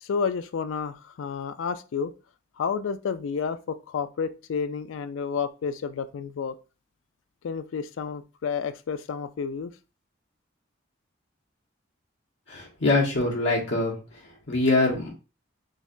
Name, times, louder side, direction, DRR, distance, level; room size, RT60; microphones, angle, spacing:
voice 1, 0.0-2.1 2.6-6.6 7.4-9.7, left 6 dB, 90° left, 0.4 m, -30 dB
voice 2, 12.5-14.0 14.5-15.1, left 2 dB, 70° left, 1.1 m, -23 dB
4.0 x 2.8 x 2.5 m
head